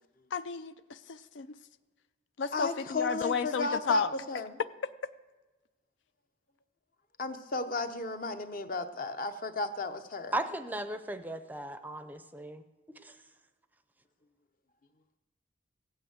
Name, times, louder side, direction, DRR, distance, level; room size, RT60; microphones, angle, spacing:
voice 1, 0.3-1.6 2.4-4.1 4.8-4.9, left 5 dB, 70° left, 13 dB, 0.4 m, -32 dB
voice 2, 2.5-4.6 7.2-10.4, left 3 dB, 45° left, 9 dB, 0.8 m, -34 dB
voice 3, 10.3-12.6 13.0-13.1, right 1 dB, 10° right, 10 dB, 0.5 m, -36 dB
15.5 x 8.9 x 8.0 m, 1.2 s
head